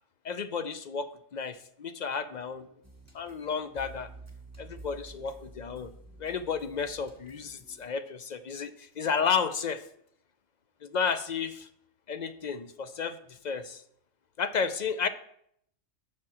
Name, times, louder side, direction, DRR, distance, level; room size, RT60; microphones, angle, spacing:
voice 1, 0.2-2.7 3.1-4.1 4.8-5.9 6.2-9.8 10.8-11.7 12.1-13.8 14.4-15.1, left 6 dB, 55° left, 11 dB, 0.5 m, -32 dB
sound 1, 2.8-7.9, right 2 dB, 15° right, 1.5 m, -50 dB
7.4 x 6.1 x 6.1 m, 0.70 s
omnidirectional pair, 1.3 m